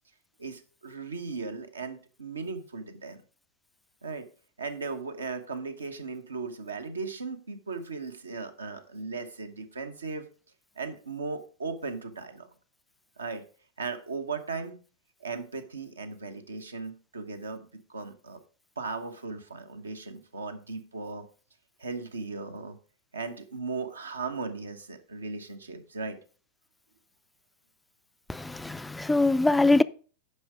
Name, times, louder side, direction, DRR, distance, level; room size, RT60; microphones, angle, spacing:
voice 1, 0.4-3.2 4.0-4.3 4.6-10.3 10.8-12.5 13.2-13.4 13.8-14.8 15.2-18.4 18.8-21.3 21.8-22.8 23.1-26.2, right 4 dB, 75° right, 1.0 m, -37 dB
voice 2, 28.3-29.8, left 2 dB, 5° left, 0.4 m, -23 dB
9.8 x 5.6 x 4.8 m
figure-of-eight pair, 90°, 0 cm